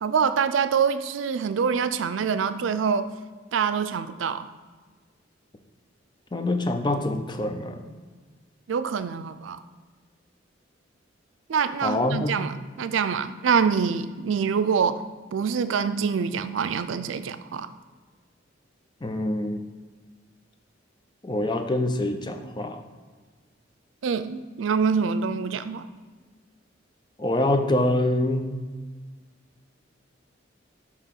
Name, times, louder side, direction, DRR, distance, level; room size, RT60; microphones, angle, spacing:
voice 1, 0.0-3.1 3.5-4.5 8.7-9.6 11.5-15.0 15.3-17.7 24.0-25.9, right 6 dB, 85° right, 12 dB, 0.4 m, -25 dB
voice 2, 6.3-7.9 11.8-12.3 19.0-19.6 21.2-22.8 27.2-28.6, left 1 dB, 25° left, 6 dB, 0.6 m, -25 dB
8.1 x 3.0 x 5.9 m, 1.4 s
head